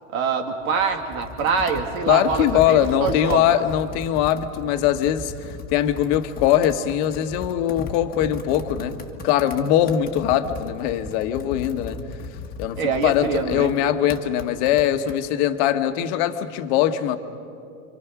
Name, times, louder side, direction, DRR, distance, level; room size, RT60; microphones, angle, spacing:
voice 1, 0.1-3.4 12.8-13.7, right 5 dB, 85° right, 4 dB, 2.9 m, -25 dB
Computer keyboard, 0.6-15.2, left 3 dB, 20° left, 1.6 m, -37 dB
voice 2, 2.1-9.0 9.2-12.0 12.6-17.2, left 11 dB, 55° left, 8 dB, 1.4 m, -21 dB
29.0 x 24.5 x 6.1 m, 2.5 s
supercardioid pair, 140°, 41 cm